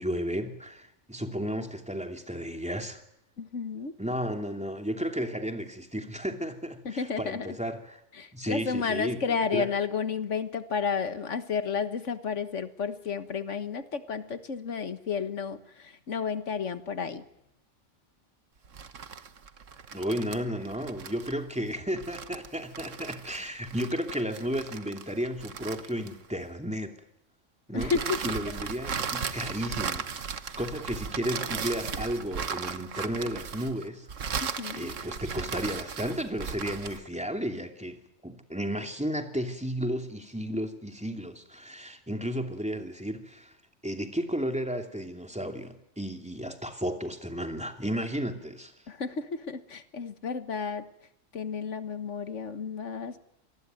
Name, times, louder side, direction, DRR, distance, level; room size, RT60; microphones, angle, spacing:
voice 1, 0.0-3.0 4.0-8.0 8.3-9.7 19.9-26.9 27.7-27.9 28.2-43.5 43.8-48.7, equal, 5° right, 4 dB, 2.7 m, -33 dB
voice 2, 3.4-3.9 6.9-7.5 8.2-17.2 27.7-28.2 34.4-34.9 48.9-50.9 51.3-53.2, left 6 dB, 75° left, 11 dB, 1.7 m, -32 dB
sound 1, 18.6-26.5 27.8-37.1, right 6 dB, 90° right, 1.6 m, -36 dB
26.5 x 19.5 x 9.3 m, 0.79 s
omnidirectional pair, 1.3 m